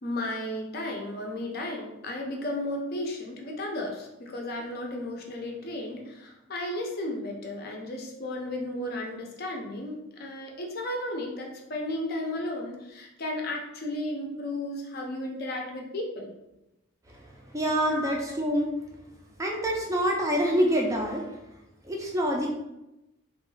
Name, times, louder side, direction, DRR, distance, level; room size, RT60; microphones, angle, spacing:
voice 1, 0.0-16.3 17.9-18.2, left 1 dB, 45° left, 1 dB, 0.5 m, -34 dB
voice 2, 17.5-18.7 19.4-21.3 21.8-22.5, equal, 15° right, -1 dB, 0.3 m, -26 dB
3.0 x 2.3 x 3.1 m, 0.92 s
head